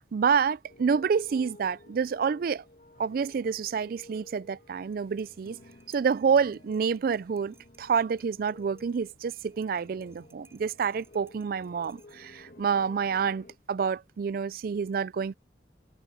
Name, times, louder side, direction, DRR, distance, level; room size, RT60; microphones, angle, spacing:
voice 1, 0.0-2.6 3.0-5.6 5.9-15.3, right 6 dB, 55° right, 0.3 m, -28 dB
sound 1, 0.7-13.6, left 2 dB, 55° left, 2.0 m, -53 dB
sound 2, 4.9-12.5, right 4 dB, 15° right, 4.9 m, -63 dB
head